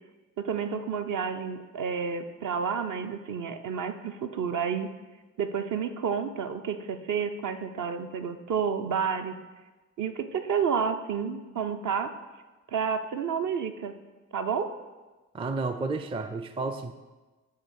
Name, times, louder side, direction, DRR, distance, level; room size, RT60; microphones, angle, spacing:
voice 1, 0.4-4.9 5.4-9.3 10.0-12.1 12.7-13.9 14.3-14.7, right 6 dB, 50° right, 8 dB, 0.7 m, -30 dB
voice 2, 15.3-16.9, right 3 dB, 15° right, 9 dB, 0.4 m, -31 dB
8.3 x 3.1 x 6.4 m, 1.2 s
hypercardioid pair, 45°, 40 cm